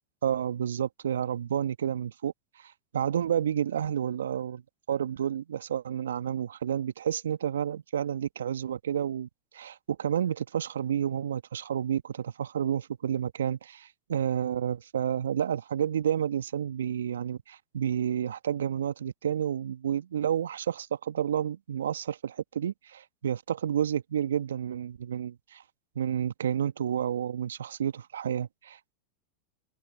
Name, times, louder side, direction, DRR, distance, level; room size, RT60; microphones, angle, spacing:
voice 1, 0.2-4.6 4.9-9.3 9.5-25.6 25.9-28.9, right 9 dB, 75° right, 1.5 m, -30 dB
figure-of-eight pair, 85°, 0 cm